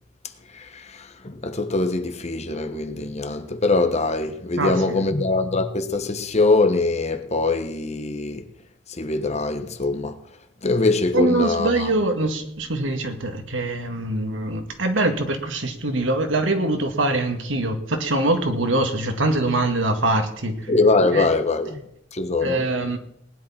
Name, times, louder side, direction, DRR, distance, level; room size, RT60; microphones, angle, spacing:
voice 1, 0.5-8.5 8.9-10.3 10.6-11.9 20.7-21.8 22.1-22.7, left 3 dB, 35° left, 1.2 m, -23 dB
voice 2, 4.6-5.0 11.1-20.5 21.1-21.3 22.4-23.0, right 2 dB, 80° right, 2.1 m, -23 dB
19.0 x 10.5 x 4.3 m
head